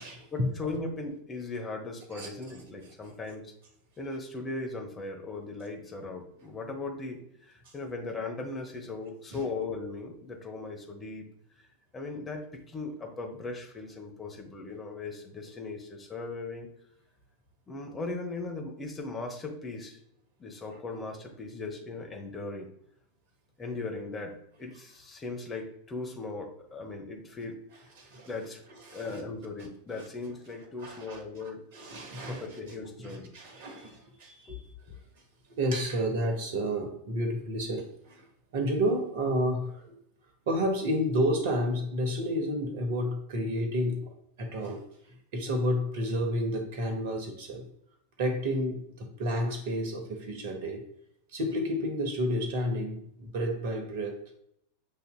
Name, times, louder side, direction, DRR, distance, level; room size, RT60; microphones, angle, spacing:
voice 1, 0.3-3.5 4.0-11.2 11.9-16.7 17.7-20.0 20.4-22.7 23.6-27.6 28.3-28.6 28.9-31.6 32.3-33.3 34.5-34.6, left 3 dB, 20° left, 1.0 m, -38 dB
voice 2, 28.0-28.3 28.9-29.2 30.8-32.5 33.0-34.5 35.5-38.2 38.5-40.0 40.5-44.1 44.4-44.8 45.3-47.6 48.2-50.9 51.3-54.2, equal, 55° right, 1.0 m, -31 dB
7.5 x 2.7 x 2.2 m
figure-of-eight pair, 85°, 0 cm